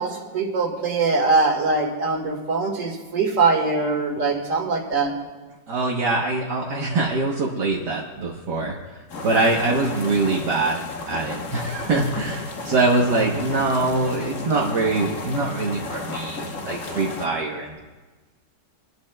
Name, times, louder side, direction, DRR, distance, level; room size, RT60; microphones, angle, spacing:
voice 1, 0.0-5.1, right 4 dB, 45° right, 0 dB, 2.2 m, -22 dB
voice 2, 5.7-17.8, right 3 dB, 70° right, -3 dB, 1.7 m, -23 dB
sound 1, 9.1-17.3, left 3 dB, 50° left, 1.3 m, -33 dB
24.0 x 11.5 x 2.2 m, 1.3 s
omnidirectional pair, 1.9 m